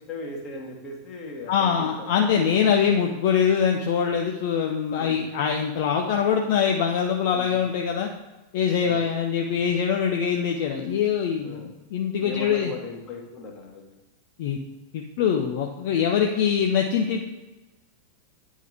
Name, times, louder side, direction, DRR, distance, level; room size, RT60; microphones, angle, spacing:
voice 1, 0.1-2.7 4.9-5.2 7.3-7.6 8.8-9.1 11.4-11.7 12.2-13.9, left 2 dB, 30° left, -1 dB, 1.6 m, -38 dB
voice 2, 1.5-8.1 8.5-12.7 14.4-14.6 14.9-17.3, left 7 dB, 50° left, 2 dB, 0.6 m, -23 dB
9.2 x 3.7 x 4.7 m, 1.1 s
figure-of-eight pair, 90°, 0 cm